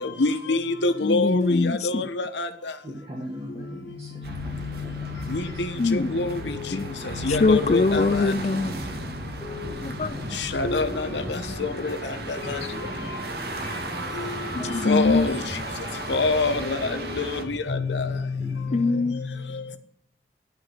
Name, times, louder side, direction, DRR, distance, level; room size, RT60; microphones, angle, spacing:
voice 1, 0.0-2.5 5.3-5.4 5.9-6.4 7.2-8.3 10.5-11.1 11.6-12.0 14.8-15.4 16.1-16.9 17.2-18.1, left 3 dB, 85° left, 1.0 m, -25 dB
voice 2, 1.0-2.1 3.5-3.7 5.8-6.1 6.7-8.8 9.8-10.2 11.3-11.7 14.5-15.3 15.8-16.1 18.7-19.4, left 3 dB, 40° left, 0.4 m, -24 dB
voice 3, 2.8-5.1 8.5-9.1 10.0-10.4 12.8-14.5 18.4-18.8, equal, 35° right, 1.9 m, -40 dB
sound 1, 4.2-17.4, right 2 dB, 60° right, 1.1 m, -36 dB
sound 2, 4.5-18.7, equal, 75° right, 3.9 m, -41 dB
sound 3, 6.0-17.5, left 1 dB, 5° right, 2.2 m, -41 dB
10.5 x 5.6 x 5.8 m
head